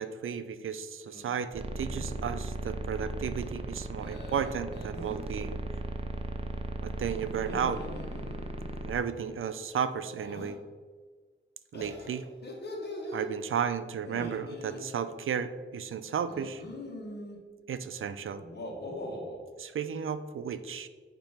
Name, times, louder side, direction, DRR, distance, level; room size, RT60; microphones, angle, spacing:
voice 1, 0.0-5.6 6.8-7.8 8.8-10.6 11.7-12.2 13.1-16.6 17.7-18.4 19.6-20.9, right 7 dB, 85° right, 12 dB, 0.5 m, -33 dB
sound 1, 1.0-1.4 1.8-2.3 4.0-5.3 7.3-8.7 10.1-10.5 11.7-13.3 14.0-14.8 16.3-17.4 18.4-19.4, left 1 dB, 50° left, 1.3 m, -42 dB
sound 2, 1.5-8.9, right 2 dB, 30° right, 0.5 m, -37 dB
8.7 x 3.0 x 5.8 m, 1.5 s
wide cardioid pair, 175°, 21 cm